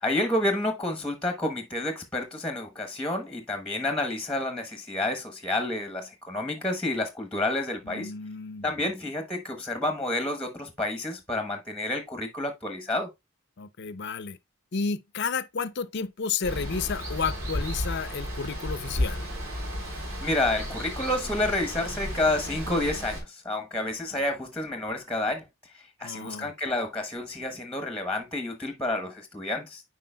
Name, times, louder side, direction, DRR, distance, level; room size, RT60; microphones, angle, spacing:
voice 1, 0.0-8.1 8.6-13.1 20.2-25.4 25.7-29.8, left 2 dB, 5° left, 1.0 m, -29 dB
voice 2, 7.8-8.9 13.6-14.4 14.7-19.2 26.0-26.5, left 5 dB, 55° left, 0.6 m, -32 dB
Water, 16.4-23.2, equal, 80° right, 3.8 m, -33 dB
9.4 x 4.8 x 2.2 m
head